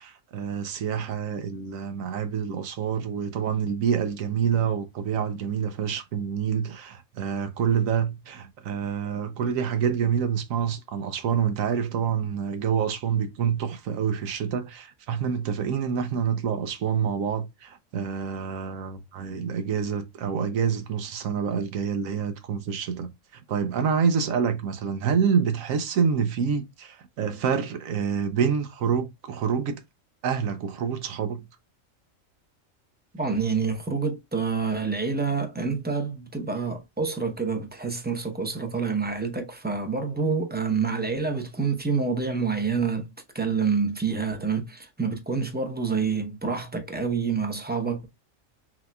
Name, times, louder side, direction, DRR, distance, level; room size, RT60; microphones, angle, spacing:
voice 1, 0.0-29.8 30.2-31.5, right 7 dB, 80° right, 1.1 m, -27 dB
voice 2, 33.1-48.1, right 5 dB, 10° right, 0.6 m, -27 dB
6.0 x 3.0 x 2.2 m
omnidirectional pair, 1.4 m